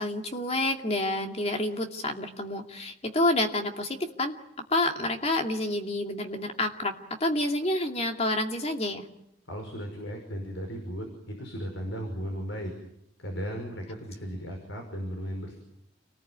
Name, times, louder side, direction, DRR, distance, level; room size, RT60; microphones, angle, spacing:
voice 1, 0.0-4.3 4.7-6.9 7.2-9.0, left 1 dB, 30° left, 4 dB, 2.5 m, -28 dB
voice 2, 9.5-12.7 13.2-15.6, equal, 70° left, 3 dB, 5.5 m, -36 dB
29.0 x 19.5 x 9.6 m, 0.82 s
head